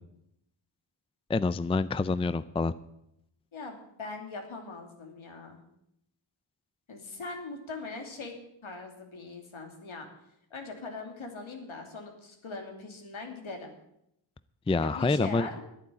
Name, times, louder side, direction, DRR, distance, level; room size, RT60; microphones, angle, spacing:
voice 1, 1.3-2.7 14.7-15.5, left 3 dB, 10° left, 15 dB, 0.5 m, -27 dB
voice 2, 3.5-5.6 6.9-10.1 10.5-13.7 14.8-15.6, left 3 dB, 70° left, 3 dB, 2.9 m, -41 dB
11.0 x 9.5 x 8.4 m, 0.79 s
cardioid pair, 55°, 49 cm